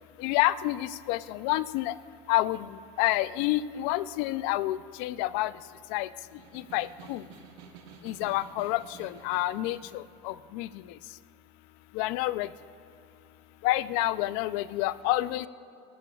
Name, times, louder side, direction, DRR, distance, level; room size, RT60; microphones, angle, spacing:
voice 1, 0.2-1.9 2.3-2.7 3.0-5.5 5.9-6.1 6.5-7.2 8.0-10.7 11.9-12.5 13.6-15.5, left 16 dB, 70° left, 16 dB, 0.5 m, -28 dB
Snare drum, 6.2-10.1, right 7 dB, 90° right, 1.3 m, -51 dB
26.5 x 13.5 x 2.4 m, 2.8 s
cardioid pair, 140°, 14 cm